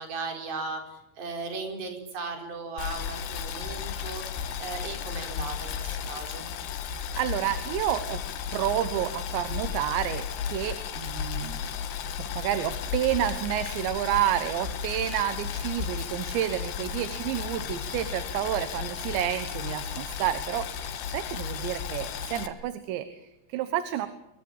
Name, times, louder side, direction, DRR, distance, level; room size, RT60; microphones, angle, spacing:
voice 1, 0.0-6.5, right 4 dB, 70° right, 4 dB, 6.9 m, -37 dB
Boiling, 2.8-22.5, left 8 dB, 75° left, 3.6 m, -34 dB
voice 2, 6.9-8.2 8.5-11.6 12.2-24.1, right 12 dB, 85° right, 10 dB, 3.6 m, -30 dB
26.0 x 23.0 x 9.0 m, 0.84 s
omnidirectional pair, 5.0 m